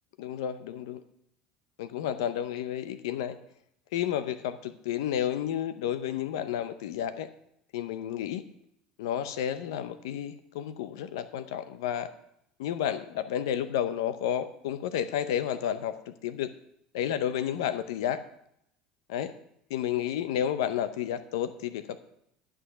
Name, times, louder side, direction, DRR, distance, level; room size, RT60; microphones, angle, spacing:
voice 1, 0.2-1.0 1.8-3.4 3.9-7.3 7.7-8.4 9.0-12.1 12.6-16.5 16.9-18.2 19.1-19.3 19.7-22.0, left 10 dB, 85° left, 12 dB, 0.6 m, -31 dB
12.0 x 6.3 x 6.5 m, 0.74 s
supercardioid pair, 95°, 2 cm